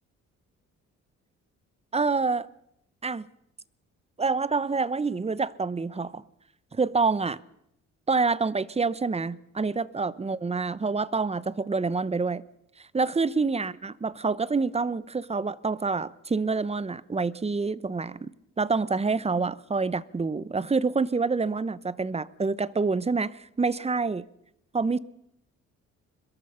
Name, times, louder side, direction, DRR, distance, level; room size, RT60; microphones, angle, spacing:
voice 1, 1.9-2.5 3.0-3.3 4.2-6.2 6.7-7.4 8.1-12.4 12.9-18.3 18.6-24.2 24.7-25.0, right 4 dB, 20° right, 0.9 m, -27 dB
22.5 x 21.5 x 5.7 m
cardioid pair, 90°, 30 cm